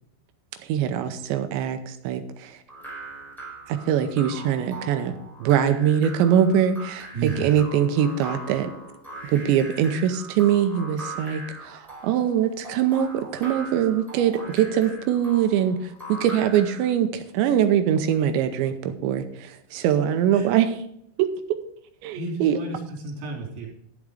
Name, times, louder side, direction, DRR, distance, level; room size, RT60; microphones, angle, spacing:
voice 1, 0.6-2.6 3.7-8.7 9.3-20.7 21.2-21.3 22.0-22.6, right 9 dB, 80° right, 8 dB, 2.8 m, -23 dB
sound 1, 2.7-16.9, right 1 dB, ahead, 3.7 m, -40 dB
voice 2, 7.1-7.6 19.7-19.9 20.3-20.5 22.1-23.7, right 3 dB, 55° right, -1 dB, 5.1 m, -32 dB
12.5 x 7.2 x 4.9 m, 0.73 s
omnidirectional pair, 5.7 m